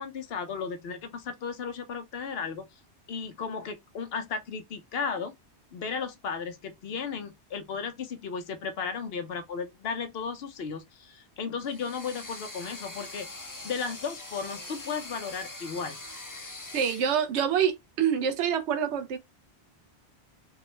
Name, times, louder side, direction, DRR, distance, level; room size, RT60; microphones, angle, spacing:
voice 1, 0.0-2.7 3.1-5.3 5.7-16.0, left 5 dB, 65° left, 0.9 m, -35 dB
sound 1, 11.6-17.1, left 2 dB, 25° left, 0.5 m, -43 dB
voice 2, 16.7-19.2, right 8 dB, 90° right, 0.9 m, -26 dB
3.4 x 2.1 x 3.0 m
omnidirectional pair, 1.1 m